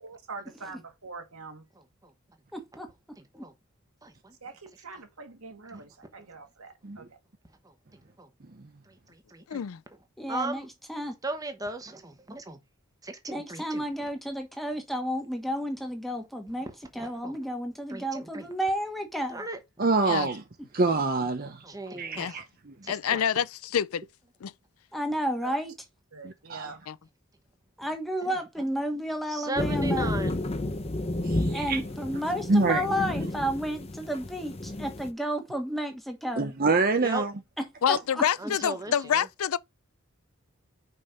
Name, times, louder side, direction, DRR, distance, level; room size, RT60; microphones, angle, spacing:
voice 1, 0.3-1.6 4.4-7.1 25.4-25.5 26.1-26.8, right 4 dB, 75° right, 1.9 m, -44 dB
voice 2, 1.8-2.1 3.2-3.5 4.0-4.4 7.6-7.7 8.2-8.3 8.9-9.6 10.3-10.7 11.2-12.6 13.0-13.8 16.6-16.7 17.0-17.4 17.9-18.5 19.3-19.6 21.6-22.4 22.8-23.2 28.3-28.7 29.3-30.4 37.0-37.2 38.4-39.2, right 2 dB, 15° right, 1.1 m, -37 dB
voice 3, 2.5-2.9 3.3-3.4 10.2-11.1 13.3-16.7 16.9-19.5 24.9-25.7 27.8-30.1 31.5-36.5 37.9-38.2, equal, ahead, 1.4 m, -31 dB
voice 4, 9.5-9.8 20.1-20.3 22.1-22.4 22.9-24.0 24.4-24.5 26.9-27.0 37.8-39.6, left 8 dB, 80° left, 0.4 m, -27 dB
voice 5, 19.8-20.4 20.7-21.7 22.0-22.7 26.2-26.7 31.2-31.8 32.5-32.8 36.4-37.3, right 3 dB, 40° right, 0.7 m, -26 dB
sound 1, 29.6-35.1, left 1 dB, 30° left, 0.7 m, -31 dB
5.4 x 5.4 x 5.4 m
head